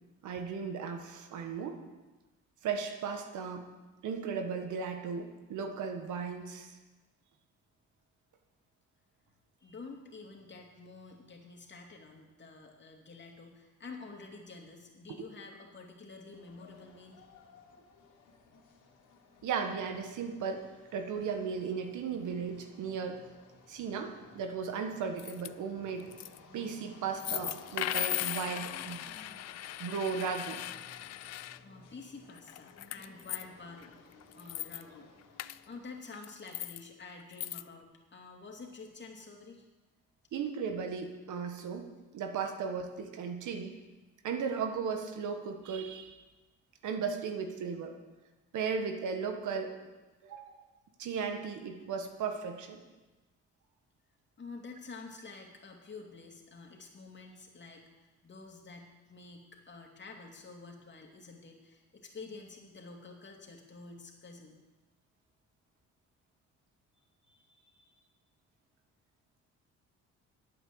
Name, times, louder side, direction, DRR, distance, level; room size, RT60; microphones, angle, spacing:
voice 1, 0.2-1.8 2.6-3.7 4.0-6.7 19.4-20.7 20.9-23.2 23.7-26.1 26.5-29.1 29.8-30.6 40.3-41.9 42.1-43.7 44.2-46.2 46.8-48.0 48.5-49.8 50.2-50.6 51.0-52.8, right 6 dB, 80° right, 6 dB, 1.6 m, -36 dB
voice 2, 9.6-17.2 31.6-34.0 34.3-35.1 35.7-39.7 54.4-64.6 67.2-67.9, left 4 dB, 35° left, 1 dB, 2.8 m, -49 dB
sound 1, 16.3-36.0, left 4 dB, 80° left, 3.0 m, -56 dB
sound 2, 25.2-25.5 25.9-26.4 27.1-31.6 32.3-33.4 33.8-33.9 34.2-34.8 35.4-35.6 36.1-36.8 37.3-37.6, left 14 dB, 60° left, 0.5 m, -38 dB
11.5 x 8.8 x 7.9 m, 1.2 s
cardioid pair, 90°, 30 cm